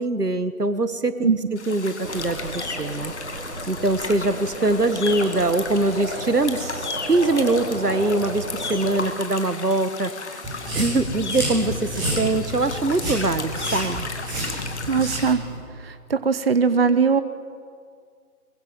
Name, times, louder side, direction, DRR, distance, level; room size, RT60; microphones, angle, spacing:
voice 1, 0.0-1.3 1.7-3.1 3.7-10.4 10.8-14.1, right 2 dB, 85° right, 12 dB, 1.7 m, -23 dB
sound 1, 1.6-15.3, left 4 dB, 45° left, 2.3 m, -34 dB
sound 2, 2.0-9.1, right 2 dB, 70° right, 4.0 m, -34 dB
sound 3, 10.4-15.6, right 1 dB, 10° right, 6.9 m, -30 dB
voice 2, 14.9-15.4 15.8-17.2, right 5 dB, 40° right, 12 dB, 0.8 m, -20 dB
22.5 x 22.5 x 7.7 m, 2.1 s
figure-of-eight pair, 150°, 45 cm